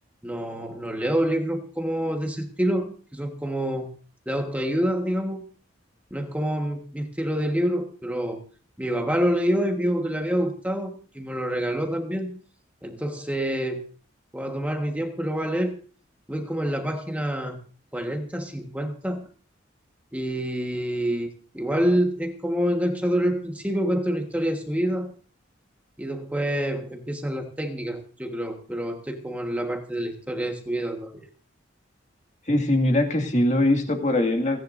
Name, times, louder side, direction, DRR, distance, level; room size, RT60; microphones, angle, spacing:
voice 1, 0.2-3.9 4.3-5.4 6.1-8.4 8.8-12.4 12.8-13.8 14.3-15.8 16.3-17.6 17.9-19.3 20.1-25.1 26.0-31.3, equal, 5° right, 3 dB, 1.4 m, -27 dB
voice 2, 32.5-34.6, left 1 dB, 35° left, 3 dB, 2.1 m, -22 dB
30.0 x 10.5 x 2.6 m, 0.40 s
head